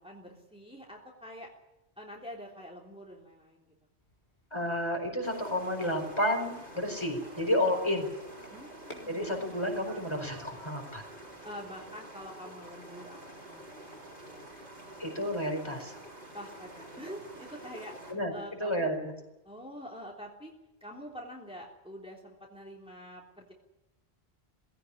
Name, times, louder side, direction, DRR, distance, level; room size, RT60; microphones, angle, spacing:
voice 1, 0.0-1.5 2.0-3.7 8.5-9.3 11.4-14.5 16.3-18.9 19.4-20.5 20.8-23.5, equal, 5° right, -2 dB, 3.4 m, -46 dB
sound 1, 4.0-11.9, left 3 dB, 50° left, 3.9 m, -50 dB
voice 2, 4.5-8.1 9.1-11.0 15.0-16.0 18.1-18.3 18.6-19.0, left 1 dB, 25° left, 3 dB, 4.6 m, -31 dB
sound 2, 5.2-18.1, right 1 dB, 55° right, 5.2 m, -48 dB
19.5 x 17.0 x 9.9 m, 0.97 s
omnidirectional pair, 1.1 m